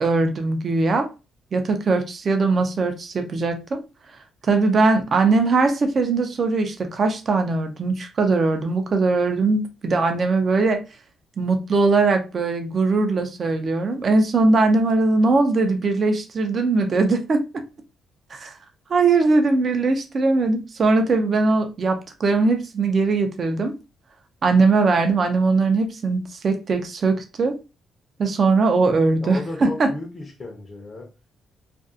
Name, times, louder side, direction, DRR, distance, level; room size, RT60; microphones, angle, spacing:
voice 1, 0.0-1.1 1.5-3.8 4.4-10.8 11.4-17.4 18.3-18.5 18.9-23.7 24.4-27.6 28.2-29.9, right 3 dB, 45° right, 0.5 m, -20 dB
voice 2, 29.2-31.1, left 2 dB, 40° left, 0.7 m, -34 dB
2.5 x 2.3 x 2.4 m
cardioid pair, 90°, 0 cm